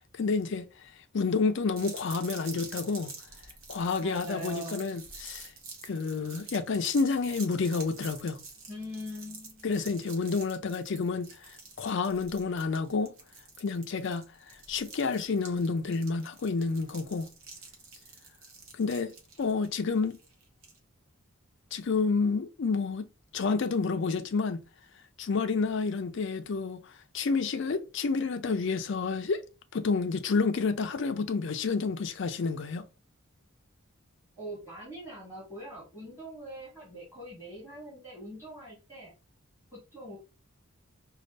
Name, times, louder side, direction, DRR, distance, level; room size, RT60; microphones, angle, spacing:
voice 1, 0.2-0.6 1.1-3.1 3.7-5.5 5.8-8.4 9.6-13.1 13.6-14.2 14.7-17.3 18.8-19.1 19.4-20.2 21.7-23.1 23.3-24.6 25.2-26.8 27.1-29.4 29.7-32.9, left 4 dB, 55° left, 0.4 m, -29 dB
sound 1, 1.8-20.8, right 4 dB, 65° right, 1.1 m, -47 dB
voice 2, 4.0-4.9 8.7-9.8 34.4-39.1 39.7-40.2, equal, 10° right, 2.2 m, -42 dB
5.1 x 2.4 x 3.2 m
head